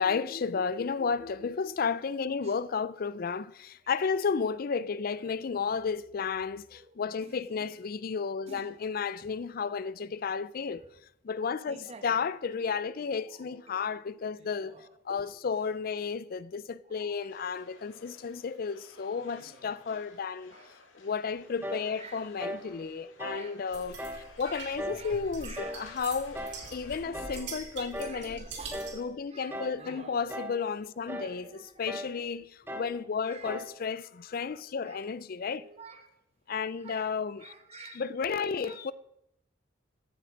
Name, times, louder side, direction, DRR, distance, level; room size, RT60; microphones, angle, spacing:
voice 1, 0.0-10.9 11.2-14.8 15.0-20.5 20.9-24.0 24.4-26.4 26.7-28.5 28.9-35.7 36.5-37.5 37.9-38.9, left 5 dB, 50° left, 0.4 m, -33 dB
voice 2, 5.1-5.5 6.7-6.9 7.2-7.7 8.5-8.9 9.4-9.8 10.2-10.4 11.7-12.2 13.1-13.8 14.4-15.3 16.8-17.3 19.1-19.7 20.5-20.7 21.3-21.5 21.9-22.2 22.9-23.6 24.1-26.0 26.4-27.6 28.0-28.9 29.3-30.3 31.1-31.8 33.2-33.5 34.7-35.0 35.5-36.1 36.5-37.1 37.4-38.8, right 4 dB, 35° right, 1.1 m, -51 dB
sound 1, 17.3-27.1, left 3 dB, 90° left, 1.9 m, -56 dB
sound 2, 21.6-21.9 22.4-22.7 23.2-23.5 24.0-24.3 24.8-25.1 25.5-25.9 26.3-26.6 27.1-27.4 27.9-28.2 28.7-29.0 29.5-29.8 30.3-30.6 31.1-31.4 31.9-32.2 32.7-33.0 33.4-33.8, equal, 10° right, 0.9 m, -38 dB
sound 3, 23.7-29.1, right 4 dB, 60° right, 2.6 m, -44 dB
15.0 x 7.7 x 5.1 m
head